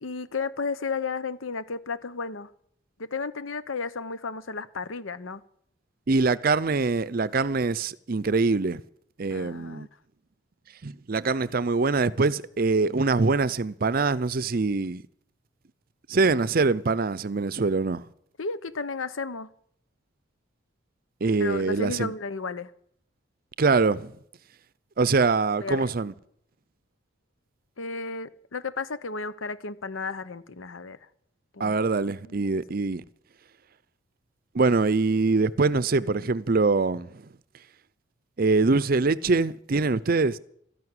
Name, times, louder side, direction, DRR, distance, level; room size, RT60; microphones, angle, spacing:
voice 1, 0.0-2.5 3.0-5.4 9.3-9.9 18.4-19.5 21.4-22.7 25.6-25.9 27.8-31.0 31.5-31.7 32.2-32.5, left 4 dB, 80° left, 0.9 m, -33 dB
voice 2, 6.1-8.8 9.2-9.9 10.8-15.0 16.1-18.0 21.2-22.1 23.6-24.1 25.0-26.1 31.6-33.0 34.5-37.2 38.4-40.4, right 3 dB, 45° right, 0.6 m, -24 dB
13.0 x 11.0 x 9.7 m
head